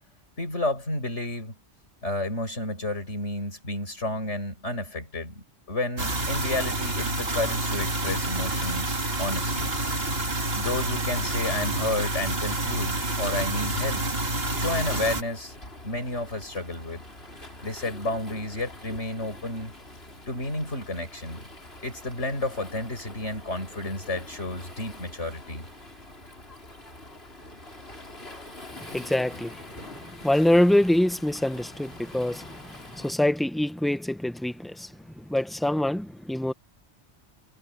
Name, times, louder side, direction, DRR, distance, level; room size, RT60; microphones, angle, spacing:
voice 1, 0.4-1.5 2.0-9.7 10.6-14.1 14.6-15.5 15.8-17.0 17.6-19.8 20.3-21.5 21.8-25.7, left 2 dB, 75° left, 7.5 m, -31 dB
sound 1, 6.0-15.2, right 2 dB, 55° right, 2.7 m, -28 dB
Waves surf, 14.5-33.1, left 1 dB, 60° left, 5.9 m, -45 dB
voice 2, 28.9-29.6 30.2-34.9 35.2-36.5, left 1 dB, ahead, 0.5 m, -25 dB
omnidirectional pair, 1.2 m